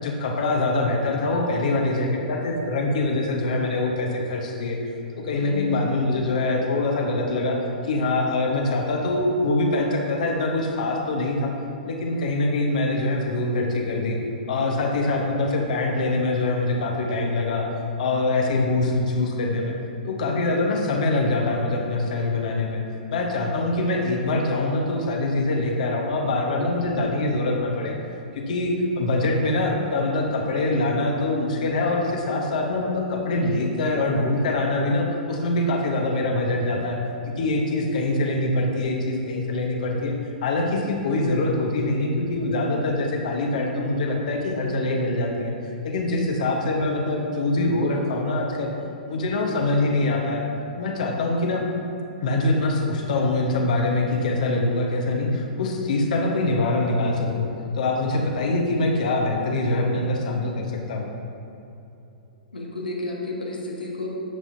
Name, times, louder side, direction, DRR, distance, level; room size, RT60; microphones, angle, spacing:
voice 1, 0.0-4.8 5.2-7.6 7.8-11.5 11.8-14.2 14.5-17.7 18.0-19.7 20.0-22.8 23.1-27.9 28.3-37.0 37.4-40.1 40.4-48.7 49.1-50.4 50.7-51.7 52.2-57.5 57.8-61.1, left 2 dB, 55° left, 1 dB, 1.1 m, -24 dB
voice 2, 5.3-5.8 26.9-27.0 46.0-46.3 62.5-64.1, left 2 dB, 80° left, -2 dB, 1.4 m, -32 dB
11.0 x 7.4 x 2.7 m, 2.8 s
figure-of-eight pair, 110°, 5 cm